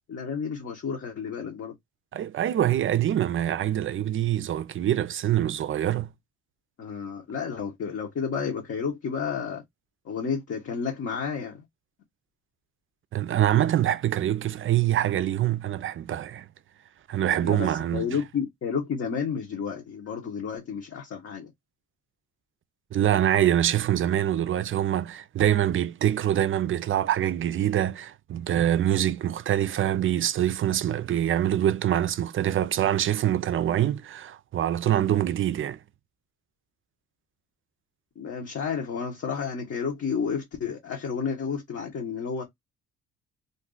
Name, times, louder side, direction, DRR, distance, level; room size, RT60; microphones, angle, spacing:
voice 1, 0.1-1.7 6.8-9.6 10.0-11.6 17.4-21.5 38.2-42.4, left 6 dB, 50° left, 1.0 m, -31 dB
voice 2, 2.1-6.1 13.1-16.5 17.1-18.1 22.9-35.8, right 11 dB, 45° right, 0.4 m, -25 dB
2.6 x 2.3 x 3.7 m
cardioid pair, 90°, 30 cm